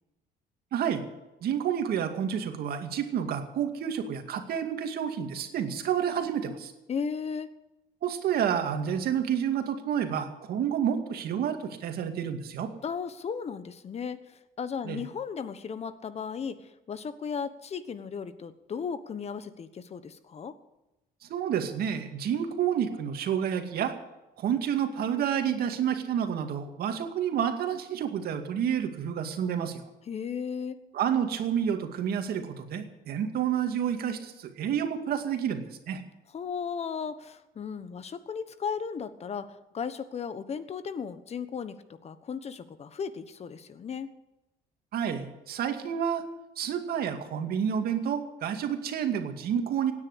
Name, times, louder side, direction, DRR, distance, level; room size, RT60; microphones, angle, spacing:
voice 1, 0.7-1.0 1.4-6.7 8.0-12.7 14.8-15.0 21.2-23.9 24.4-29.8 30.9-36.0 44.9-46.2 46.6-49.9, right 8 dB, 65° right, 6 dB, 2.3 m, -29 dB
voice 2, 6.9-7.5 12.8-20.5 30.1-30.8 36.3-41.8 42.0-44.1, left 6 dB, 40° left, 12 dB, 1.3 m, -35 dB
17.0 x 9.9 x 8.2 m, 0.97 s
cardioid pair, 110°, 17 cm